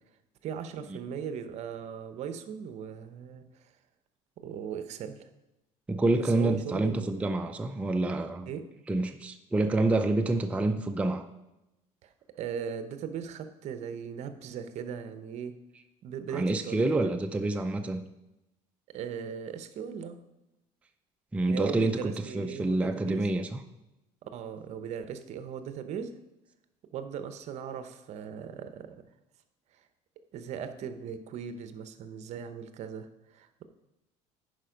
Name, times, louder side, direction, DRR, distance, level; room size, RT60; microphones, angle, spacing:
voice 1, 0.4-3.7 4.4-5.3 6.2-7.1 8.5-8.7 12.0-15.6 16.0-17.1 18.9-20.2 21.5-23.3 24.2-26.1 26.9-29.1 30.3-33.6, right 7 dB, 55° right, 10 dB, 0.8 m, -38 dB
voice 2, 5.9-8.5 8.9-11.2 16.3-18.0 21.3-23.6, right 2 dB, 10° right, 6 dB, 0.4 m, -27 dB
10.5 x 5.1 x 5.1 m, 0.94 s
cardioid pair, 130°, 14 cm